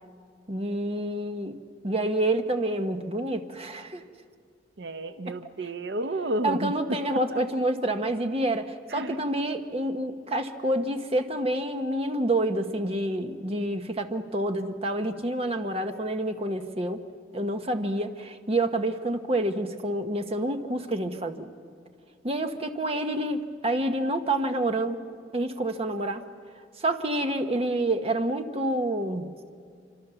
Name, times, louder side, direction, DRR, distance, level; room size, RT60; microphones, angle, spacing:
voice 1, 0.5-1.6 1.8-4.0 6.4-17.0 17.3-21.5 22.2-25.0 25.3-26.2 26.8-29.3, right 1 dB, 35° right, 7 dB, 1.1 m, -28 dB
voice 2, 4.8-7.0 7.3-7.4 8.9-9.2, right 1 dB, 75° right, 10 dB, 0.7 m, -31 dB
26.0 x 26.0 x 7.0 m, 2.2 s
head